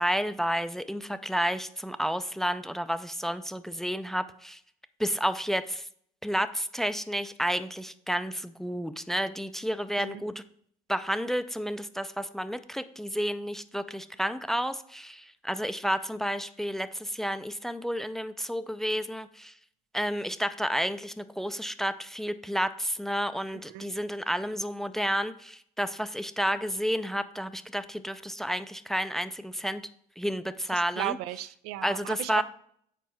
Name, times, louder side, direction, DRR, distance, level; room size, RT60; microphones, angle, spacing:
voice 1, 0.0-4.6 5.0-5.9 6.2-10.4 10.9-19.5 19.9-29.8 30.2-31.2 31.8-32.4, equal, ahead, 12 dB, 0.3 m, -31 dB
voice 2, 30.7-32.4, right 14 dB, 85° right, 15 dB, 0.4 m, -35 dB
7.3 x 4.5 x 4.4 m, 0.64 s
cardioid pair, 110°, 16 cm